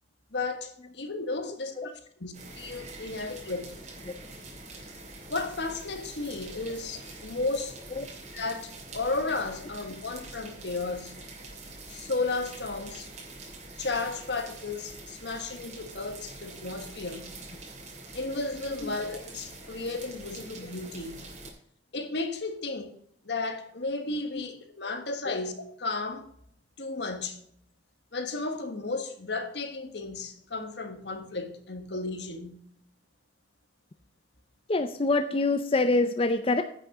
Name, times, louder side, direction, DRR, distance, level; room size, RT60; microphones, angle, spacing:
voice 1, 0.3-3.7 5.3-7.8 8.3-11.2 11.9-13.1 13.8-17.3 18.1-21.3 21.9-22.9 23.2-25.5 25.8-26.3 26.8-27.4 28.1-32.6, left 3 dB, 70° left, 1.5 m, -34 dB
sound 1, 2.3-21.5, right 2 dB, 40° right, 2.7 m, -45 dB
voice 2, 34.7-36.6, left 2 dB, 30° left, 0.5 m, -26 dB
10.0 x 6.5 x 6.0 m
head